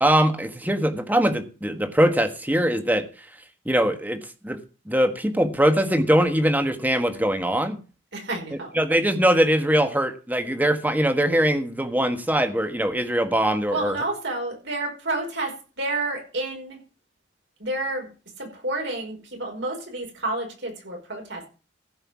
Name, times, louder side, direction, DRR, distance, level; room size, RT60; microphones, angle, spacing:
voice 1, 0.0-3.1 3.6-4.6 4.9-7.8 8.7-14.0, right 1 dB, 10° right, 7 dB, 1.5 m, -22 dB
voice 2, 8.1-8.8 13.7-16.8 17.6-18.1 18.4-21.5, right 2 dB, 70° right, 2 dB, 5.0 m, -30 dB
15.0 x 5.7 x 7.1 m, 0.35 s
head